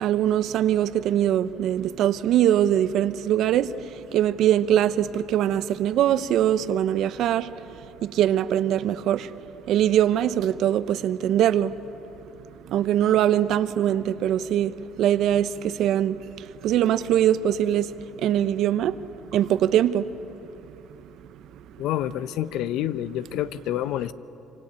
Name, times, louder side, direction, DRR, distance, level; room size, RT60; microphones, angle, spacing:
voice 1, 0.0-3.7 4.1-7.5 8.0-9.3 9.7-11.7 12.7-14.7 15.0-15.5 15.8-16.2 16.6-17.9 18.2-18.9 19.3-20.0, right 11 dB, 70° right, 13 dB, 0.9 m, -22 dB
voice 2, 21.8-24.1, left 12 dB, 75° left, 15 dB, 0.7 m, -28 dB
25.5 x 25.5 x 8.6 m, 2.9 s
cardioid pair, 95°, 0 cm